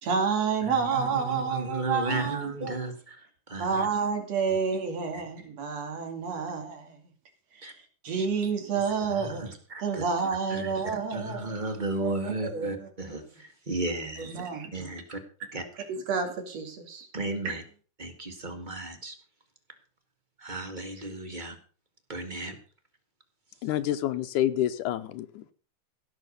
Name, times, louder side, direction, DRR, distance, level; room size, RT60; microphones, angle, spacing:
voice 1, 0.0-2.8 3.6-7.0 7.6-7.7 8.0-11.6 12.0-12.9 14.2-14.7 15.9-17.1, right 5 dB, 60° right, 3.5 m, -29 dB
voice 2, 0.6-3.9 4.5-4.6 5.1-5.2 7.6-7.7 8.2-8.3 9.1-10.0 10.5-10.7 11.1-14.4 14.7-15.2 15.5-15.6 17.1-17.6 18.0-19.1 20.4-21.6 22.1-22.5, right 2 dB, 20° right, 1.4 m, -34 dB
voice 3, 23.6-25.5, left 12 dB, 85° left, 2.2 m, -28 dB
16.5 x 6.5 x 6.6 m
omnidirectional pair, 3.5 m